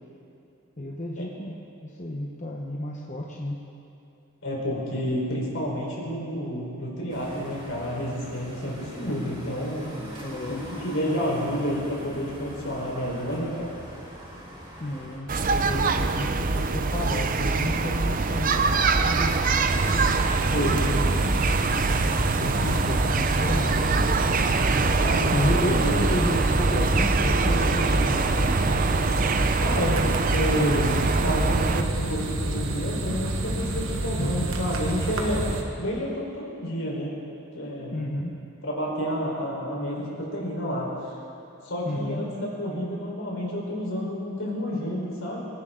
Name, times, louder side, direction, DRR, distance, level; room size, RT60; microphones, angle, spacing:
voice 1, 0.8-3.6 10.2-10.6 14.8-19.7 20.8-21.4 22.4-24.4 25.3-28.7 34.2-34.5 37.9-38.4 41.8-42.3, left 1 dB, 35° left, -2 dB, 1.1 m, -32 dB
voice 2, 4.4-10.0 10.8-13.7 20.5-20.8 25.0-26.1 29.6-30.0 30.3-37.1 37.5-38.0 38.6-41.1 41.6-45.4, equal, 70° left, -3 dB, 4.5 m, -30 dB
sound 1, 7.1-15.2, equal, 25° right, 4.0 m, -41 dB
sound 2, 15.3-31.8, right 3 dB, 45° right, 0.6 m, -24 dB
sound 3, 19.7-35.6, right 1 dB, 75° right, 1.4 m, -29 dB
26.0 x 11.5 x 3.9 m, 2.6 s
head